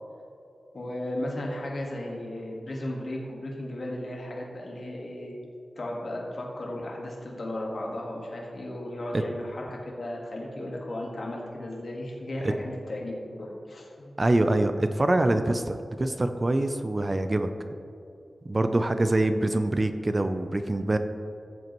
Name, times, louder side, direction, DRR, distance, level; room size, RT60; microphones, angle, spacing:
voice 1, 0.7-5.4 5.7-13.9, left 1 dB, 50° left, -2 dB, 1.6 m, -35 dB
voice 2, 14.2-17.5 18.4-21.0, right 2 dB, 30° right, 8 dB, 0.5 m, -25 dB
15.0 x 7.8 x 3.1 m, 2.8 s
wide cardioid pair, 105°, 0 cm